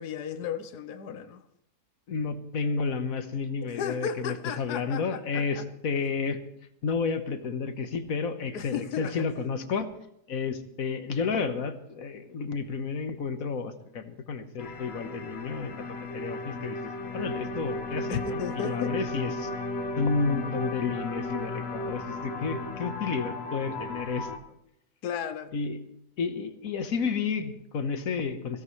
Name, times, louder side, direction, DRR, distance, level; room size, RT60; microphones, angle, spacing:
voice 1, 0.0-1.4 3.6-5.6 8.5-9.3 18.1-19.0 25.0-25.5, left 8 dB, 80° left, 1.4 m, -34 dB
voice 2, 2.1-6.4 6.8-9.9 10.3-19.5 20.0-24.3 25.5-25.8 26.2-28.6, left 5 dB, 60° left, 1.6 m, -31 dB
sound 1, 14.6-24.4, left 2 dB, 45° left, 1.3 m, -35 dB
22.0 x 16.5 x 3.2 m
omnidirectional pair, 1.7 m